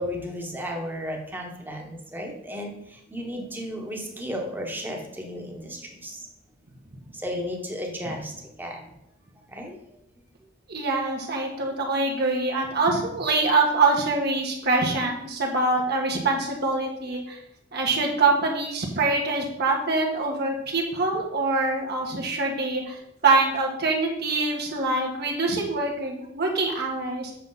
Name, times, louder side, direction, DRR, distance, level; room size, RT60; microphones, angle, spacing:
voice 1, 0.0-6.3 7.1-8.3 8.6-8.8 9.5-9.8 17.9-18.0, equal, 10° right, 1 dB, 1.3 m, -34 dB
voice 2, 10.7-17.4 17.7-27.3, right 3 dB, 55° right, -1 dB, 1.5 m, -24 dB
7.7 x 6.1 x 4.1 m, 0.78 s
head